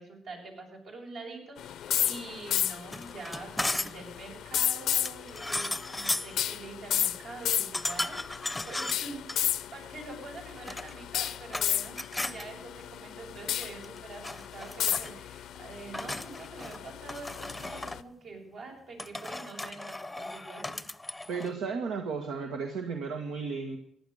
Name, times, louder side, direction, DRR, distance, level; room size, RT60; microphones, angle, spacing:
voice 1, 0.0-8.1 8.7-20.8, right 3 dB, 70° right, 0 dB, 7.3 m, -45 dB
sound 1, 1.6-18.0, left 11 dB, 75° left, 0.6 m, -34 dB
sound 2, 2.8-4.1 5.0-6.4 7.7-9.4 10.5-11.7 11.9-12.4 13.6-14.0 14.2-15.1 15.9-16.8 17.1-18.0 19.0-21.5, left 2 dB, 10° left, 0.7 m, -36 dB
voice 2, 21.3-23.8, right 5 dB, 90° right, 4 dB, 1.8 m, -34 dB
15.0 x 11.5 x 6.5 m, 0.71 s
cardioid pair, 90°, 0 cm